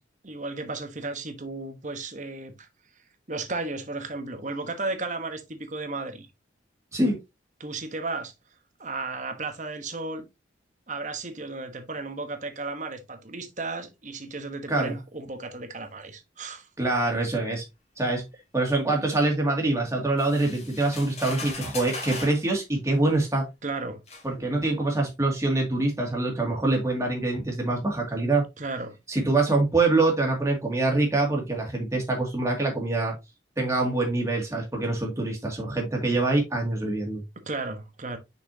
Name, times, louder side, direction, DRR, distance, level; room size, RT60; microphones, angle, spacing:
voice 1, 0.2-2.7 3.3-6.3 7.6-8.3 8.8-10.3 10.9-16.7 23.6-24.0 28.6-29.0 37.4-38.2, right 3 dB, 40° right, 1.2 m, -34 dB
voice 2, 16.8-17.6 18.0-18.2 18.5-23.4 24.2-28.4 29.1-33.1 33.6-37.2, right 2 dB, 15° right, 2.2 m, -25 dB
sound 1, 20.2-22.4 23.4-23.5 24.1-24.3, left 3 dB, 35° left, 2.5 m, -38 dB
6.1 x 6.0 x 2.8 m
head